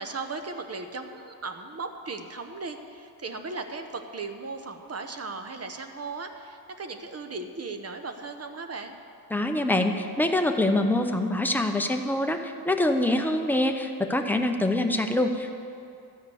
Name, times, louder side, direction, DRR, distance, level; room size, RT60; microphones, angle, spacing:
voice 1, 0.0-9.0, right 3 dB, 35° right, 7 dB, 0.8 m, -37 dB
voice 2, 9.3-15.6, left 1 dB, 5° left, 4 dB, 0.6 m, -25 dB
13.0 x 5.0 x 8.4 m, 2.6 s
wide cardioid pair, 115°, 43 cm